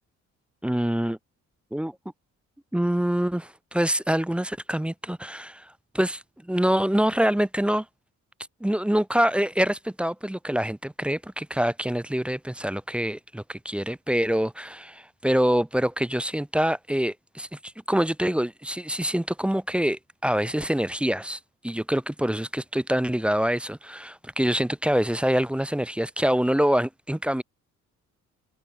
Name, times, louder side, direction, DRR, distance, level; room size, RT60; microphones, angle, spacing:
voice 1, 0.6-1.2 1.7-2.0 2.7-7.9 8.6-27.4, equal, 5° right, 0.4 m, -25 dB
cardioid pair, 90°, 30 cm